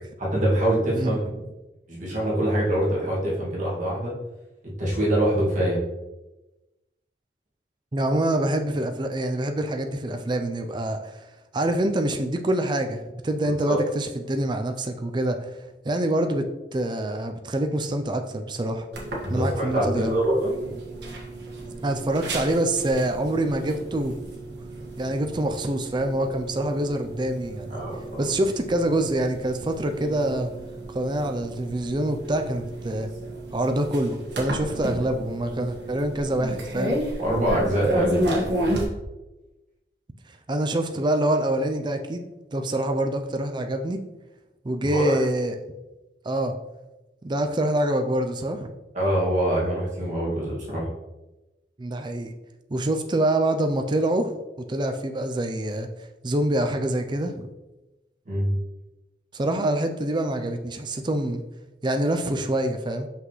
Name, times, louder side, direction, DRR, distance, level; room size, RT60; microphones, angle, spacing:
voice 1, 0.2-1.2 1.9-4.1 4.6-5.8 13.4-13.8 19.2-20.5 27.7-28.2 37.2-38.3 44.8-45.2 48.9-50.9 58.3-58.6, right 1 dB, 45° right, -6 dB, 2.0 m, -24 dB
voice 2, 7.9-11.3 11.5-15.5 15.8-16.5 16.7-18.9 19.3-20.2 21.8-24.2 25.0-27.8 28.2-30.5 30.9-33.1 33.5-37.0 40.5-44.0 44.6-45.5 46.2-46.5 47.2-48.7 51.8-52.3 52.7-54.3 54.7-55.9 56.2-57.5 59.3-61.4 61.8-63.1, right 1 dB, 25° right, 6 dB, 0.4 m, -25 dB
sound 1, 18.9-38.8, right 1 dB, 70° right, 1.6 m, -33 dB
5.8 x 5.7 x 3.1 m, 1.0 s
head